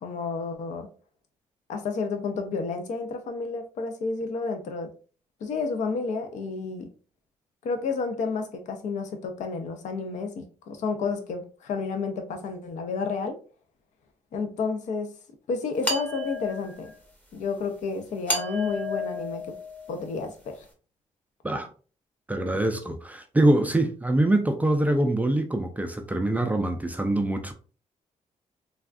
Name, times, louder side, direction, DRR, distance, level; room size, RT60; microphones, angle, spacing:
voice 1, 0.0-0.9 1.7-4.9 5.4-6.9 7.6-13.4 14.3-15.1 15.5-16.9 17.3-19.6 19.9-20.7, left 4 dB, 75° left, 0.5 m, -31 dB
sound 1, 15.8-16.9 18.3-20.2, left 2 dB, 10° left, 0.7 m, -32 dB
voice 2, 22.3-27.5, right 1 dB, 10° right, 0.3 m, -24 dB
3.3 x 2.3 x 2.4 m
cardioid pair, 130°, 13 cm